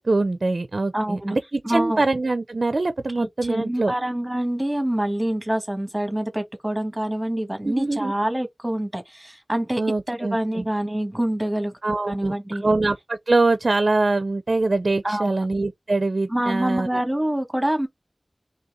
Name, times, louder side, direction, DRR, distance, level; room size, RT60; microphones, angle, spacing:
voice 1, 0.0-3.9 7.6-8.1 9.8-10.7 11.8-12.3 12.6-17.0, right 2 dB, 70° right, 0.4 m, -23 dB
voice 2, 0.9-1.4 1.6-2.0 3.2-9.8 10.1-11.7 12.1-12.7 15.0-15.3 16.3-17.9, right 1 dB, 20° right, 1.5 m, -26 dB
4.0 x 3.2 x 3.7 m
wide cardioid pair, 50°, 0 cm